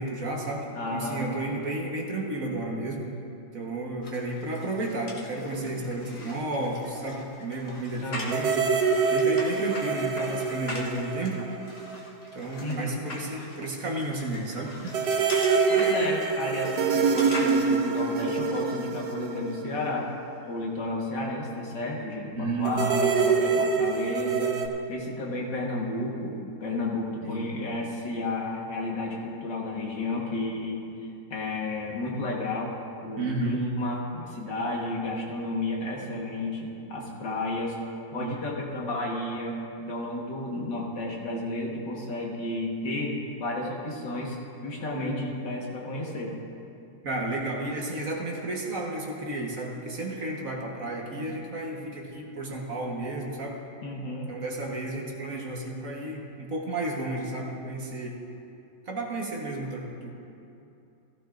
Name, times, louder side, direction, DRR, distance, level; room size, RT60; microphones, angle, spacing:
voice 1, 0.0-3.0 3.5-8.7 9.1-11.4 12.3-14.7 22.4-22.9 27.2-27.5 33.2-33.6 38.2-38.4 44.9-45.3 47.0-53.6 54.3-58.2 58.9-60.1, right 2 dB, 50° right, -1 dB, 1.6 m, -32 dB
voice 2, 0.7-1.4 8.0-8.4 12.6-13.0 15.7-20.1 20.5-24.6 24.9-30.8 31.3-32.7 33.0-37.8 38.1-39.6 39.9-44.4 44.6-46.4 53.8-54.3, left 2 dB, 80° left, -2 dB, 2.2 m, -32 dB
sound 1, 4.0-17.5, left 2 dB, 40° left, 1.4 m, -41 dB
sound 2, 8.3-12.1 12.3-12.4 14.9-20.3 22.7-24.7, right 5 dB, 70° right, 1.3 m, -25 dB
15.5 x 15.0 x 2.6 m, 2.7 s
omnidirectional pair, 1.9 m